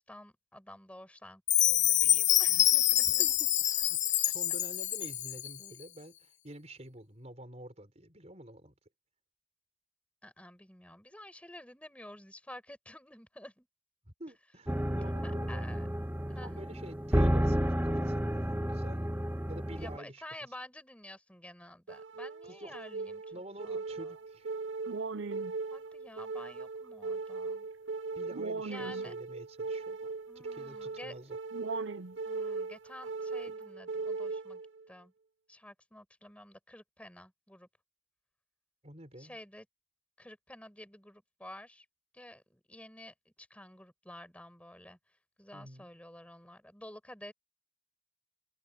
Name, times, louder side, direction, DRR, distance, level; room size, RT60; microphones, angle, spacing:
voice 1, 0.0-3.2 10.2-13.7 15.2-15.9 16.3-16.7 19.8-23.2 23.6-24.1 25.7-27.7 28.6-29.1 30.3-31.1 32.2-34.6 34.9-35.1 35.5-37.7 39.2-39.7 40.2-41.9 42.1-45.0 45.4-47.3, left 1 dB, 5° left, 5.6 m, -50 dB
Chime, 1.5-5.6, left 13 dB, 40° left, 0.7 m, -26 dB
voice 2, 3.2-8.7 14.1-15.7 16.4-19.1 19.5-20.5 22.4-22.8 23.3-24.5 28.1-31.4 38.8-39.4 45.5-45.9, right 1 dB, 35° right, 5.1 m, -49 dB
sound 1, 14.7-20.0, equal, 10° right, 1.2 m, -31 dB
sound 2, 21.9-34.9, right 4 dB, 80° right, 0.7 m, -38 dB
head